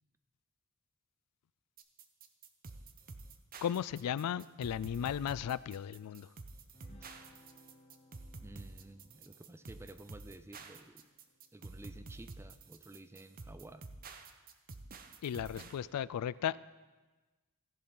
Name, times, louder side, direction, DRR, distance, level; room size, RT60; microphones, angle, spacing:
sound 1, 1.8-15.8, right 3 dB, 40° right, 0.8 m, -50 dB
voice 1, 3.6-6.3 15.2-16.6, left 9 dB, 90° left, 18 dB, 0.3 m, -35 dB
sound 2, 6.7-12.4, equal, 25° left, 1.1 m, -64 dB
voice 2, 8.4-11.1 11.5-13.9, right 2 dB, 10° right, 11 dB, 0.4 m, -52 dB
15.0 x 11.0 x 3.9 m, 1.2 s
head